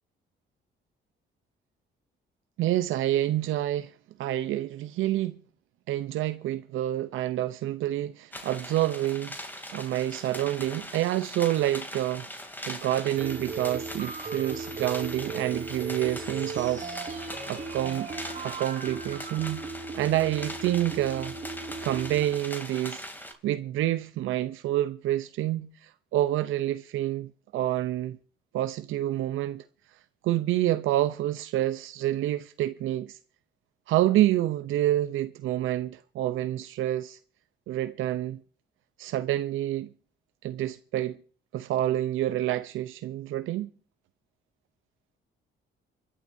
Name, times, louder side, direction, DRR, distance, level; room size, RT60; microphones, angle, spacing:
voice 1, 2.6-5.4 5.9-9.4 9.7-12.3 12.7-16.8 17.5-18.1 18.4-19.6 19.9-21.3 21.8-28.2 28.5-29.6 30.2-33.2 33.9-37.2 37.7-38.4 39.0-39.9 40.4-41.2 41.5-43.7, right 13 dB, 85° right, 0.7 m, -28 dB
sound 1, 8.3-23.3, left 1 dB, 10° left, 2.9 m, -41 dB
sound 2, 13.2-22.5, right 4 dB, 35° right, 2.5 m, -37 dB
27.5 x 11.5 x 2.7 m
cardioid pair, 90°, 20 cm